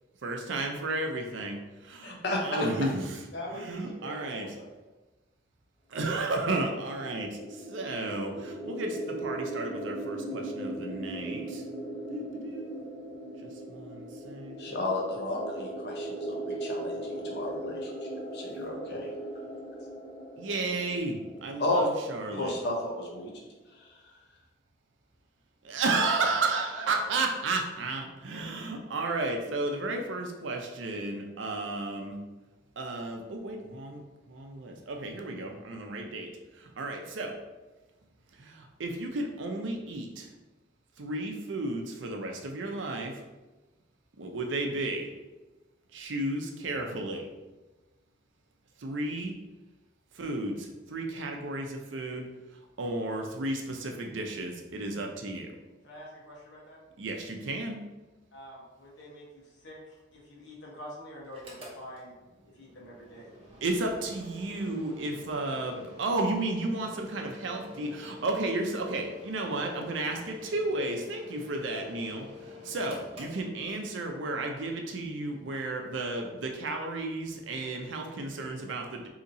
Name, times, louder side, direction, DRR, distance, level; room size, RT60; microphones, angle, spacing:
voice 1, 0.2-1.6 2.0-2.2 2.4-3.2 3.5-4.6 5.9-11.6 12.1-12.8 13.4-14.8 20.4-22.6 25.6-32.2 32.8-37.4 38.3-40.3 41.0-43.2 44.2-45.1 45.9-47.3 48.8-49.3 50.1-55.5 57.0-57.8 63.6-79.1, right 2 dB, 85° right, 2 dB, 0.5 m, -33 dB
voice 2, 2.0-2.4 14.6-19.1 21.6-21.9 22.3-23.4 23.7-24.0, left 2 dB, 60° left, -1 dB, 0.7 m, -33 dB
voice 3, 3.3-4.7 26.7-27.2 55.8-56.8 58.3-62.1 62.5-63.3, equal, 80° left, -3 dB, 1.0 m, -45 dB
sound 1, 6.7-22.3, right 1 dB, 10° left, 0.5 m, -39 dB
Mechanical fan, 61.2-74.1, left 3 dB, 30° right, 0.8 m, -47 dB
3.9 x 2.8 x 2.6 m, 1.1 s
head